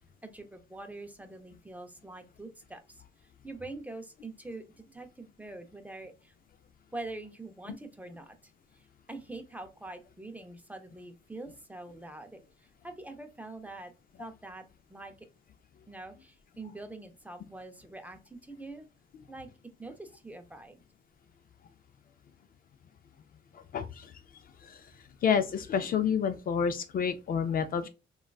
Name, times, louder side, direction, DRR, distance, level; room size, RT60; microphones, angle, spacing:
voice 1, 0.2-3.0 3.4-6.3 6.9-13.9 14.2-14.6 14.9-15.3 15.9-18.9 19.3-19.5 19.8-20.8, right 2 dB, 10° right, 0.5 m, -44 dB
voice 2, 23.5-24.1 24.6-24.9 25.2-27.9, left 7 dB, 45° left, 0.4 m, -29 dB
3.6 x 2.3 x 2.3 m
cardioid pair, 90°, 20 cm